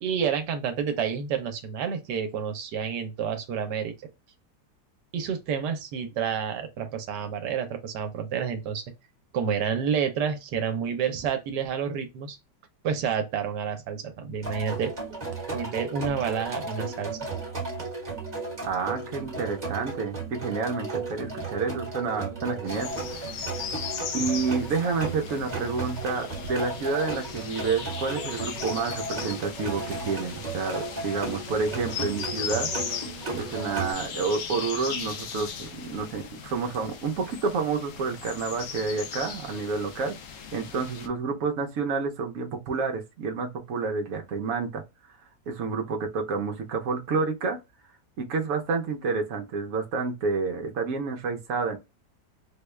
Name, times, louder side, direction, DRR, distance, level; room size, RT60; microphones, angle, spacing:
voice 1, 0.0-4.1 5.1-8.9 9.3-12.4 12.8-14.9 15.5-17.3, right 7 dB, 80° right, 1.2 m, -29 dB
sound 1, 14.4-33.9, right 3 dB, 25° right, 1.2 m, -35 dB
voice 2, 18.6-22.9 24.1-32.7 33.3-40.1 40.5-44.8 45.5-47.6 48.2-51.8, right 4 dB, 60° right, 1.0 m, -29 dB
sound 2, 22.7-41.1, left 7 dB, 65° left, 0.8 m, -38 dB
3.5 x 2.2 x 3.1 m
omnidirectional pair, 1.8 m